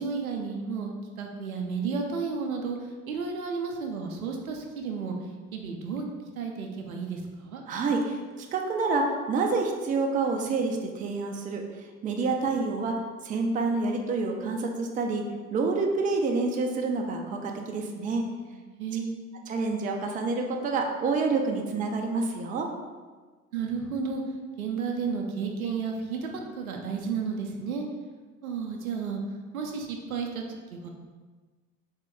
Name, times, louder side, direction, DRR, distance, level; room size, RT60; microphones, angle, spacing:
voice 1, 0.0-5.2 5.5-6.1 6.4-7.6 18.5-19.2 23.5-24.2 24.6-27.9 28.4-29.2 29.5-30.9, right 5 dB, 80° right, 2 dB, 0.6 m, -32 dB
voice 2, 7.7-11.6 12.0-13.0 13.2-15.2 15.5-18.3 19.5-22.7, right 3 dB, 20° right, 2 dB, 0.4 m, -28 dB
3.6 x 2.9 x 3.4 m, 1.4 s
figure-of-eight pair, 60°, 42 cm